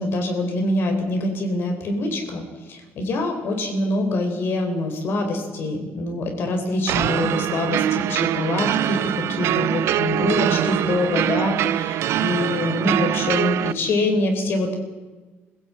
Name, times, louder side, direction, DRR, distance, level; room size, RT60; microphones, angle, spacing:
voice 1, 0.0-14.8, left 2 dB, 55° left, 4 dB, 3.8 m, -25 dB
sound 1, 6.9-13.7, right 12 dB, 70° right, 0.6 m, -23 dB
24.0 x 16.5 x 8.7 m, 1.3 s
cardioid pair, 180°, 5 cm